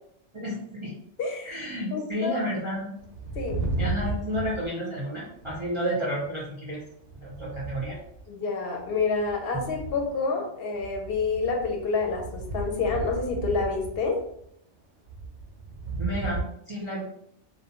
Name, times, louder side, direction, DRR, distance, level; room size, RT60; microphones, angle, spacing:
voice 1, 0.3-0.9 1.4-2.9 3.8-6.8 7.2-8.0 16.0-17.0, equal, 40° right, -6 dB, 0.4 m, -31 dB
voice 2, 1.2-1.6 1.9-2.4 3.4-3.6 8.3-14.2, left 4 dB, 65° left, 2 dB, 0.7 m, -28 dB
sound 1, 3.0-5.8 6.1-6.4 6.8-8.2 8.8-10.2 10.7-14.4 15.1-16.4, right 3 dB, 85° right, 0.9 m, -35 dB
Drum, 9.5-11.3, right 4 dB, 10° left, 0.8 m, -43 dB
2.4 x 2.0 x 2.8 m, 0.73 s
omnidirectional pair, 1.2 m